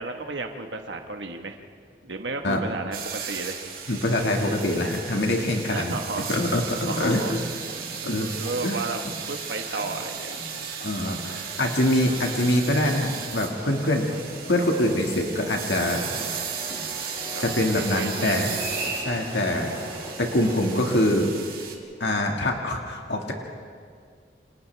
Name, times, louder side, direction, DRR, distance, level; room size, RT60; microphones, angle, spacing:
voice 1, 0.0-1.6 2.0-3.6 5.7-6.3 6.8-7.3 8.1-9.0 9.3-10.3 17.3-18.7, right 3 dB, 90° right, 4 dB, 1.4 m, -33 dB
sound 1, 2.9-21.8, right 7 dB, 55° right, 2.6 m, -36 dB
voice 2, 3.9-6.0 6.3-7.4 8.0-8.3 8.6-8.8 10.8-14.1 14.5-16.5 17.4-18.5 18.9-19.7 20.2-21.3 22.0-23.3, left 1 dB, 80° left, 1 dB, 2.0 m, -24 dB
sound 2, 7.0-20.2, equal, 50° left, 2.2 m, -44 dB
sound 3, 15.7-21.0, right 1 dB, 10° right, 7.6 m, -38 dB
29.5 x 26.0 x 3.4 m, 2.1 s
head